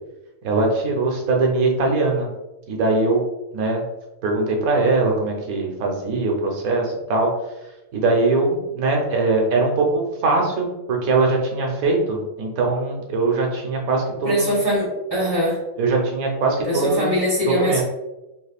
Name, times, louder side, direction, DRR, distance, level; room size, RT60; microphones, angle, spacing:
voice 1, 0.4-2.3 2.7-3.2 3.5-3.8 4.2-7.3 7.9-14.5 15.8-17.1 17.6-17.8, right 3 dB, 75° right, 0 dB, 1.2 m, -21 dB
voice 2, 14.2-15.6 16.6-17.8, equal, 20° right, -7 dB, 1.1 m, -22 dB
3.4 x 3.1 x 2.4 m, 0.98 s
omnidirectional pair, 1.5 m